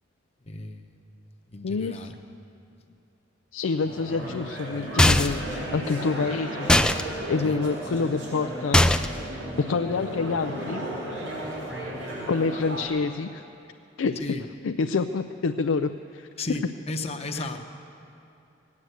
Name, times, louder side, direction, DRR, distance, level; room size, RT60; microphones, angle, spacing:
voice 1, 0.5-1.0 1.5-2.2 7.4-7.6 14.2-14.4 16.4-17.6, left 2 dB, 35° left, 6 dB, 0.9 m, -34 dB
voice 2, 1.6-2.1 3.5-6.7 7.3-9.0 9.6-10.8 12.0-13.4 14.0-14.2 14.6-16.3 17.4-17.5, left 4 dB, 90° left, 7 dB, 0.4 m, -27 dB
sound 1, 3.8-12.9, right 1 dB, 85° right, 5.1 m, -35 dB
sound 2, 5.0-5.5 6.7-7.0 8.7-9.2, left 1 dB, 5° left, 0.3 m, -19 dB
17.5 x 9.6 x 7.9 m, 2.6 s
head